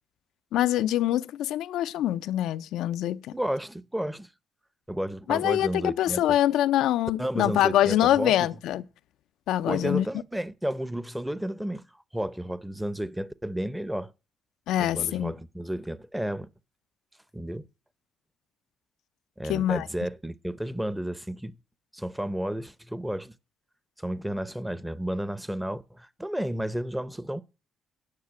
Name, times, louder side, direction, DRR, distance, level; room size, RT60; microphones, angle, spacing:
voice 1, 0.5-3.3 5.3-8.8 9.5-10.1 14.7-15.3 19.5-19.9, left 12 dB, 85° left, 0.5 m, -24 dB
voice 2, 3.3-4.3 4.9-6.4 7.2-8.5 9.7-11.8 12.1-14.1 14.8-16.5 17.3-17.7 19.4-21.6 21.9-23.3 24.0-27.4, right 1 dB, 5° right, 0.7 m, -32 dB
9.8 x 5.6 x 8.5 m
cardioid pair, 90°, 0 cm